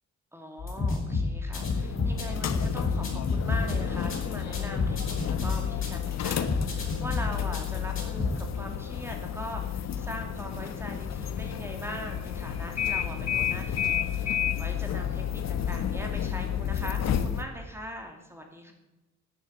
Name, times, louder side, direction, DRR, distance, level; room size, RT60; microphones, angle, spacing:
voice 1, 0.3-18.7, equal, 10° right, 3 dB, 2.7 m, -41 dB
sound 1, 0.6-8.4, left 3 dB, 45° left, 5.7 m, -30 dB
sound 2, 1.6-17.4, left 9 dB, 60° left, 1.3 m, -31 dB
11.5 x 10.0 x 8.1 m, 1.0 s
cardioid pair, 90°, 30 cm